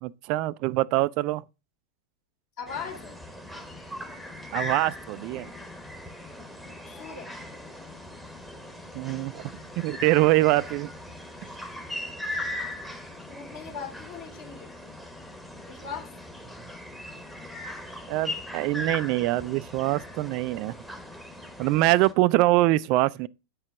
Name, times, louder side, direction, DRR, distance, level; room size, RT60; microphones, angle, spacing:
voice 1, 0.0-1.4 4.5-5.5 8.9-9.4 9.8-10.9 18.1-20.7 21.6-23.3, right 18 dB, 45° right, 0.3 m, -24 dB
voice 2, 2.6-3.1 6.9-7.3 13.3-15.0 15.7-16.1, left 6 dB, 45° left, 2.6 m, -39 dB
sound 1, 2.7-22.1, left 1 dB, ahead, 1.1 m, -39 dB
9.4 x 4.6 x 3.4 m
figure-of-eight pair, 90°, 0 cm